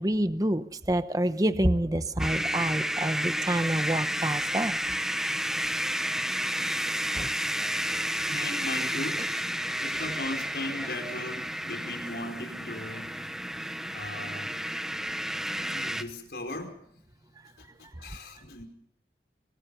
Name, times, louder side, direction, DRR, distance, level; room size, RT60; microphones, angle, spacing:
voice 1, 0.0-4.8 7.1-7.3 7.6-7.7 18.1-18.2, right 1 dB, 20° right, 11 dB, 0.9 m, -27 dB
sound 1, 2.2-16.0, equal, 5° right, 1.0 m, -31 dB
voice 2, 8.1-9.3 9.8-13.2 13.9-14.5 15.6-16.8 17.6-18.7, left 2 dB, 70° left, 5 dB, 4.8 m, -38 dB
25.5 x 24.5 x 5.6 m, 0.64 s
head